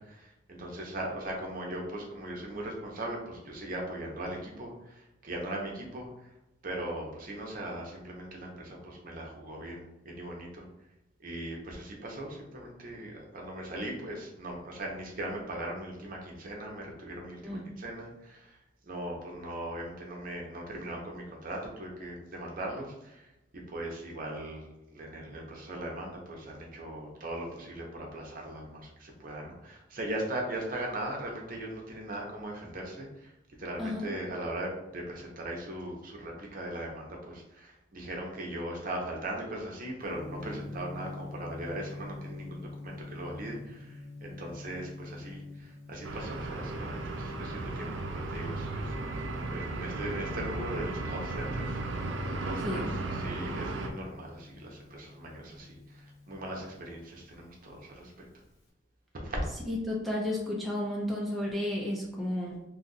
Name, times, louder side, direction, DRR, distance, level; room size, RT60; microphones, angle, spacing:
voice 1, 0.0-6.3 6.6-10.7 11.2-18.6 18.8-23.3 23.7-33.3 33.6-52.1 52.4-58.1 59.1-59.4, right 1 dB, 50° right, 0 dB, 0.8 m, -39 dB
Gong, 40.0-58.7, left 2 dB, 85° left, 1.1 m, -47 dB
sound 1, 46.0-53.9, right 2 dB, 90° right, 0.4 m, -35 dB
voice 2, 59.7-62.6, left 1 dB, ahead, -4 dB, 0.6 m, -32 dB
2.7 x 2.4 x 4.0 m, 0.94 s
head